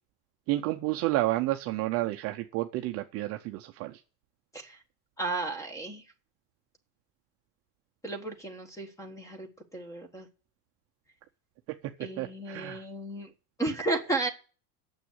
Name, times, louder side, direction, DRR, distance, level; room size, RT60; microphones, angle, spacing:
voice 1, 0.5-4.0 12.2-12.8, right 17 dB, 35° right, 4 dB, 0.5 m, -30 dB
voice 2, 5.2-6.0 8.0-10.3 12.0-13.3 13.6-14.3, right 2 dB, 5° left, 7 dB, 1.3 m, -33 dB
9.1 x 7.1 x 7.9 m, 0.38 s
supercardioid pair, 165°, 46 cm